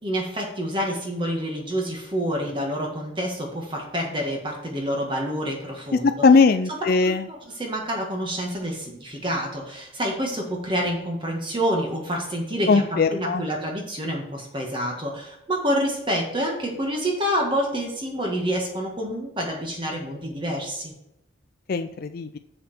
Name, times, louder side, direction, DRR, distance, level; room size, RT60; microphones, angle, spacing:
voice 1, 0.0-6.2 6.7-20.9, equal, 25° right, 0 dB, 1.6 m, -28 dB
voice 2, 6.2-7.2 12.7-13.4 21.7-22.4, left 4 dB, 45° left, 9 dB, 0.4 m, -19 dB
7.0 x 7.0 x 4.4 m, 0.80 s
head